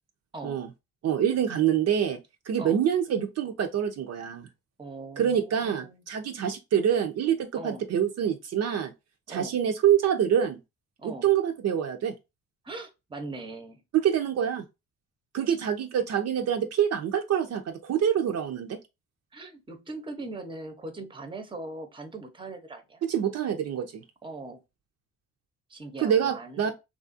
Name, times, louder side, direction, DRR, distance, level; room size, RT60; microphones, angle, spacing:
voice 1, 1.0-2.2 2.5-4.5 5.2-8.9 9.3-10.6 11.0-12.1 13.9-14.6 15.3-18.8 23.0-24.0 26.0-26.7, right 9 dB, 60° right, 0.5 m, -26 dB
voice 2, 4.8-6.0 7.5-7.8 9.3-9.6 11.0-11.3 12.6-13.8 19.3-23.0 24.2-24.6 25.7-26.7, right 2 dB, 15° right, 0.7 m, -40 dB
3.2 x 2.4 x 2.5 m
cardioid pair, 90°, 30 cm